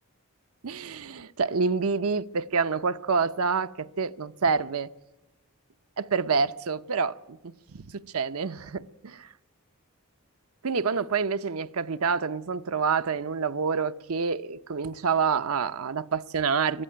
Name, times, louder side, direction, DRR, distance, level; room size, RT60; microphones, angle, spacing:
voice 1, 0.6-4.9 6.0-9.3 10.6-16.8, right 5 dB, 90° right, 0.7 m, -27 dB
22.0 x 15.5 x 9.0 m
head